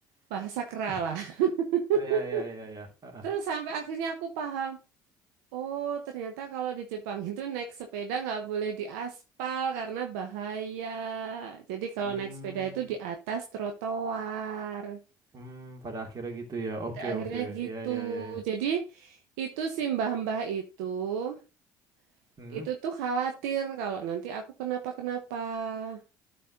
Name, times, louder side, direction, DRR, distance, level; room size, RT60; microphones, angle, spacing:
voice 1, 0.3-2.4 3.2-4.8 5.5-15.0 17.0-21.4 22.5-26.0, right 7 dB, 75° right, 4 dB, 1.0 m, -32 dB
voice 2, 1.9-3.3 12.0-12.9 15.3-18.4 22.4-22.7, right 2 dB, 40° right, 2 dB, 2.8 m, -38 dB
12.0 x 4.1 x 3.8 m, 0.30 s
hypercardioid pair, 60°, 10 cm